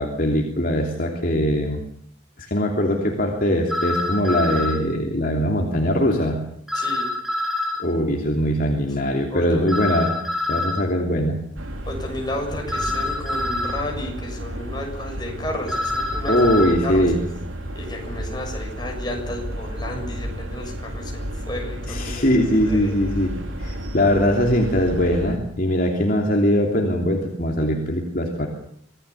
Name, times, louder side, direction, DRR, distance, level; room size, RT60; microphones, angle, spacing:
voice 1, 0.0-1.8 2.4-6.4 7.8-10.1 10.5-11.4 16.3-17.2 21.9-28.5, equal, 45° left, 1 dB, 3.0 m, -21 dB
sound 1, 3.7-4.8 6.7-7.8 9.7-10.8 12.7-13.8 15.7-16.7, left 2 dB, ahead, 5.2 m, -26 dB
voice 2, 6.7-7.1 9.3-9.8 11.9-16.4 16.8-17.1 17.8-22.3 22.6-22.9, left 1 dB, 20° left, 1 dB, 7.0 m, -32 dB
sound 2, 11.6-25.4, equal, 85° right, 3.4 m, -32 dB
25.5 x 18.0 x 8.4 m, 0.68 s
head